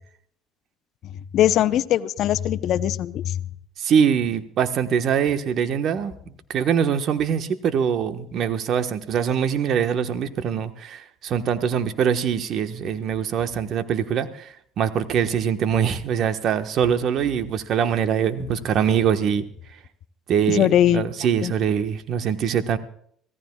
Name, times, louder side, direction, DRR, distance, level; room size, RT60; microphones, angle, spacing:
voice 1, 1.0-3.4 20.5-21.0 21.4-21.5, left 11 dB, 60° left, 12 dB, 0.8 m, -21 dB
voice 2, 3.8-19.4 20.3-22.8, right 8 dB, 60° right, 8 dB, 1.3 m, -23 dB
25.0 x 16.5 x 2.4 m, 0.63 s
hypercardioid pair, 70°, 0 cm